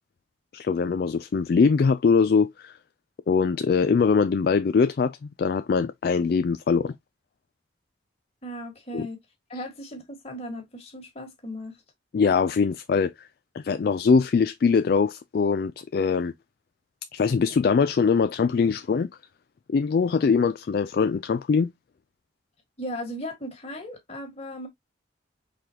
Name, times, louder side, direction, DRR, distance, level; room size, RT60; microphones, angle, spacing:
voice 1, 0.5-2.8 3.3-6.9 8.9-9.1 12.1-13.3 13.5-16.3 17.1-19.1 19.7-21.7, left 5 dB, 50° left, 0.3 m, -22 dB
voice 2, 8.4-9.2 9.5-11.8 22.8-24.7, equal, 35° left, 1.8 m, -37 dB
4.9 x 3.8 x 2.8 m
head